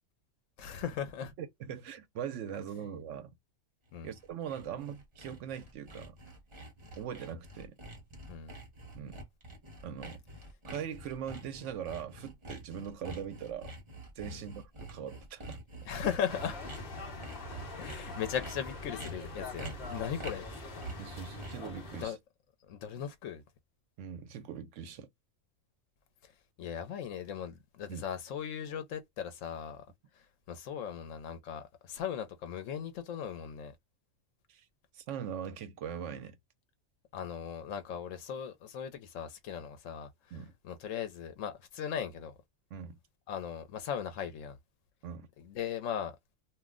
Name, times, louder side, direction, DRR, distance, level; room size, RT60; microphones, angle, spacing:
voice 1, 0.6-1.3 3.9-4.1 8.3-8.5 14.3-14.4 15.8-16.6 17.8-20.5 20.7-20.8 22.0-22.2 22.7-23.4 26.2-26.3 26.6-29.8 30.5-33.7 37.1-40.1 40.6-42.3 43.3-44.6 45.4-46.1, left 8 dB, 85° left, 1.0 m, -38 dB
voice 2, 1.4-3.4 4.0-6.2 7.0-7.8 8.9-9.2 9.8-10.2 10.7-13.7 14.2-15.6 21.0-22.1 24.0-25.1 27.9-28.0 34.5-34.7 34.9-36.4 40.3-40.5 42.7-43.0 45.0-45.3, right 8 dB, 75° right, 0.9 m, -41 dB
Sawing, 3.9-21.7, right 1 dB, 25° right, 1.0 m, -47 dB
sound 1, 16.3-22.0, left 2 dB, 50° left, 0.9 m, -43 dB
2.5 x 2.1 x 3.5 m
omnidirectional pair, 1.3 m